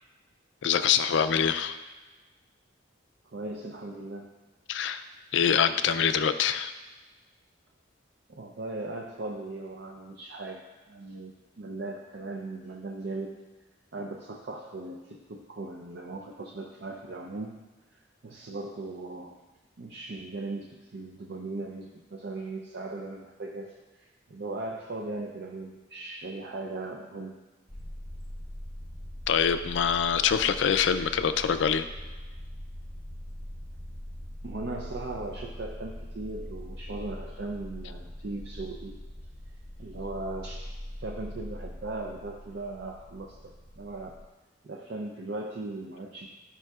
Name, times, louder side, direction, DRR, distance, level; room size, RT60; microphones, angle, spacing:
voice 1, 0.6-1.8 4.7-5.0 5.3-6.7 29.3-31.9, left 7 dB, 70° left, 11 dB, 0.4 m, -25 dB
voice 2, 3.2-4.3 8.3-13.4 13.9-17.6 17.9-19.4 19.8-27.4 34.4-39.0 39.8-40.7 41.0-44.2 44.6-46.3, right 2 dB, 60° right, 0 dB, 0.5 m, -38 dB
sound 1, 27.7-44.2, left 1 dB, 15° left, 0.8 m, -42 dB
12.0 x 5.6 x 2.4 m, 1.2 s
head